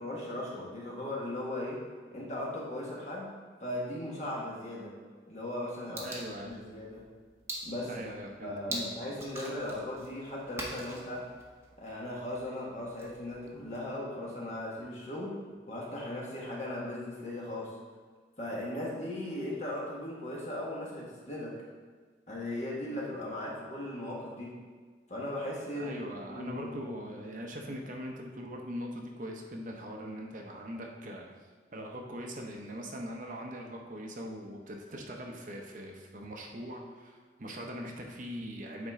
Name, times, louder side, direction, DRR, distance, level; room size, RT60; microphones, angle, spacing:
voice 1, 0.0-1.8 2.1-3.3 3.6-4.9 5.3-6.1 6.4-7.0 7.6-8.0 8.4-11.3 11.8-15.3 15.7-17.7 18.4-21.6 22.3-24.5 25.1-26.0 26.3-26.9, left 1 dB, 40° left, -4 dB, 1.6 m, -38 dB
sound 1, 6.0-14.0, right 1 dB, 15° right, 0.9 m, -44 dB
voice 2, 6.0-6.7 7.9-8.9 25.7-31.2 31.7-38.9, equal, 50° right, 1 dB, 0.8 m, -41 dB
8.7 x 4.2 x 3.7 m, 1.5 s
head